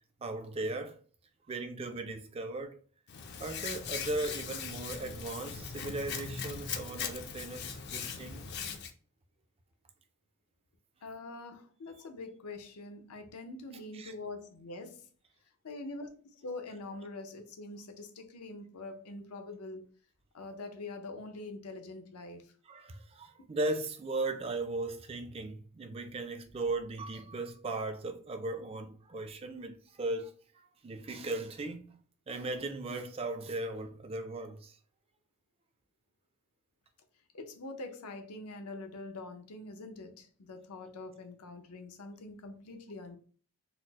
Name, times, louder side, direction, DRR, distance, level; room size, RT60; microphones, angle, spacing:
voice 1, 0.2-1.0 1.5-2.8 3.4-8.4 13.9-14.1 22.7-32.0 32.3-34.8, right 2 dB, 25° right, 0.3 m, -37 dB
Hands, 3.1-8.9, left 6 dB, 50° left, 0.4 m, -40 dB
voice 2, 11.0-15.1 15.6-19.9 20.3-22.5 37.3-43.2, left 2 dB, 90° left, 0.6 m, -44 dB
4.1 x 2.0 x 2.8 m
head